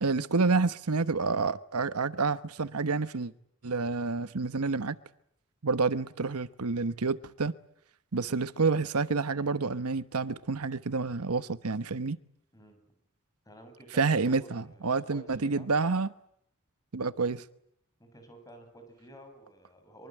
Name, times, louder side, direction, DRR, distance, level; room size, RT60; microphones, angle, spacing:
voice 1, 0.0-3.3 3.6-5.0 5.6-7.5 8.1-12.2 13.9-16.1 16.9-17.4, right 4 dB, 85° right, 1.0 m, -28 dB
voice 2, 13.5-15.7 18.0-20.1, right 1 dB, 15° left, 7.5 m, -51 dB
25.0 x 24.0 x 9.0 m
head